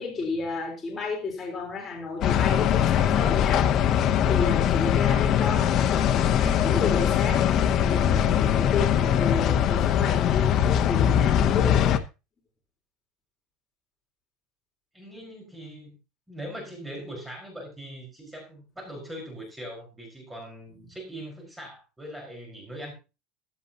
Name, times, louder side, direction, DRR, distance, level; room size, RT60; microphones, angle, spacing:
voice 1, 0.0-7.4 7.8-12.0 20.8-20.9, left 4 dB, 20° left, 3.8 m, -32 dB
sound 1, 2.2-12.0, left 9 dB, 40° left, 0.8 m, -22 dB
voice 2, 14.9-16.0 16.3-22.9, equal, 5° right, 4.7 m, -41 dB
14.5 x 12.5 x 2.8 m
cardioid pair, 165°, 0 cm